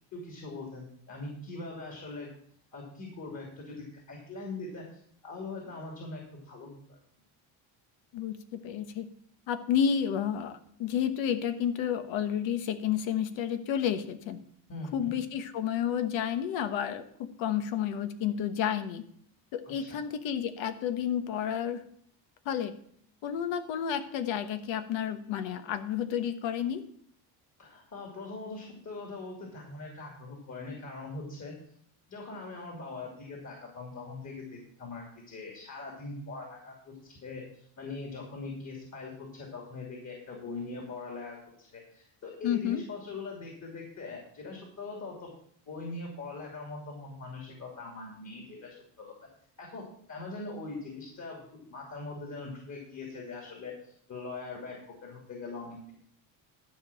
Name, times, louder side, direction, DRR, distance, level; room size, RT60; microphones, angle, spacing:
voice 1, 0.1-2.3 2.7-3.8 4.1-7.0 14.7-15.2 19.9-20.0 27.6-31.5 32.1-45.3 45.7-49.1 49.6-55.9, left 3 dB, 40° left, 0 dB, 2.9 m, -42 dB
voice 2, 8.1-9.1 9.5-14.4 14.9-17.0 17.4-19.0 19.5-21.8 22.4-22.7 23.2-26.8 42.4-42.8, left 9 dB, 80° left, 10 dB, 1.2 m, -31 dB
12.5 x 5.2 x 7.3 m, 0.64 s
cardioid pair, 130°, 45 cm